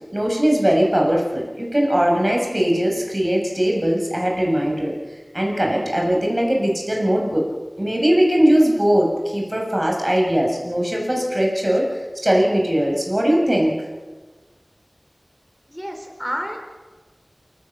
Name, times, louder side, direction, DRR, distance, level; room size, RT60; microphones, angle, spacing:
voice 1, 0.1-4.9 5.3-7.5 7.8-11.8 12.2-13.8, equal, 30° right, 0 dB, 7.1 m, -20 dB
voice 2, 15.7-16.6, equal, ahead, 2 dB, 5.7 m, -29 dB
28.0 x 16.0 x 7.4 m, 1.3 s
wide cardioid pair, 45°, 0 cm